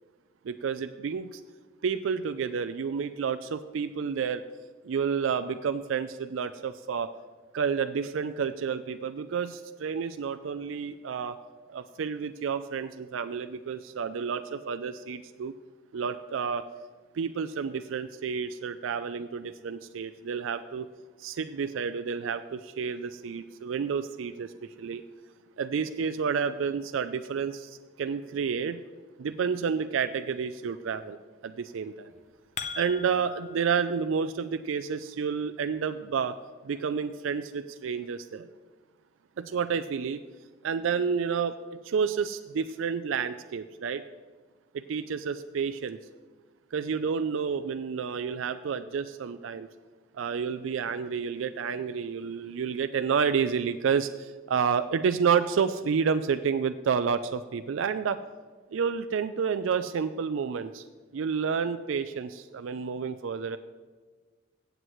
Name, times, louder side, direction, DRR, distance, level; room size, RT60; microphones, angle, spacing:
voice 1, 0.4-1.4 1.8-4.4 4.8-7.1 7.5-11.4 11.7-15.5 15.9-16.6 17.1-20.9 21.2-25.0 25.6-28.8 29.2-31.2 31.4-32.1 32.8-36.4 36.6-38.5 39.4-40.2 40.6-41.6 41.8-44.0 44.9-46.0 46.7-49.7 50.1-58.2 58.7-60.8 61.1-63.6, right 6 dB, 85° right, 10 dB, 0.4 m, -30 dB
sound 1, 32.1-33.6, left 6 dB, 35° left, 0.5 m, -39 dB
15.5 x 8.0 x 3.1 m, 1.4 s
head